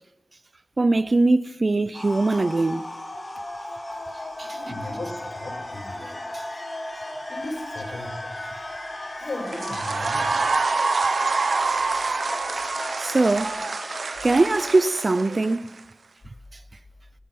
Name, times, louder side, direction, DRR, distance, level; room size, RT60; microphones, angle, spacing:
voice 1, 0.8-2.9 4.4-4.5 13.0-13.6 14.2-15.7, right 2 dB, 45° right, 0.6 m, -21 dB
sound 1, 1.9-15.5, left 1 dB, 30° left, 4.5 m, -36 dB
voice 2, 4.5-6.2 7.3-8.2 9.1-10.5, left 1 dB, 80° left, 4.8 m, -36 dB
sound 2, 9.5-15.8, right 4 dB, 75° right, 0.8 m, -26 dB
19.0 x 12.0 x 5.9 m
wide cardioid pair, 90°, 0 cm